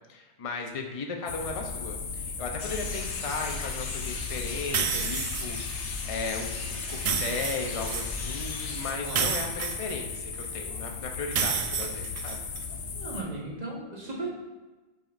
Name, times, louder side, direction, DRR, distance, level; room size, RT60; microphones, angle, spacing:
voice 1, 0.1-12.4, left 4 dB, 35° left, 2 dB, 0.7 m, -36 dB
sound 1, 1.3-13.2, left 5 dB, 65° left, 0.9 m, -36 dB
sound 2, 2.6-8.9, left 3 dB, 90° left, 1.2 m, -38 dB
sound 3, 4.7-5.6 6.9-8.1 9.1-10.5 11.3-12.6, right 6 dB, 70° right, 0.3 m, -30 dB
voice 2, 9.0-9.5 12.9-14.3, right 2 dB, 40° right, -3 dB, 1.3 m, -37 dB
7.2 x 5.6 x 2.5 m, 1.2 s
omnidirectional pair, 1.1 m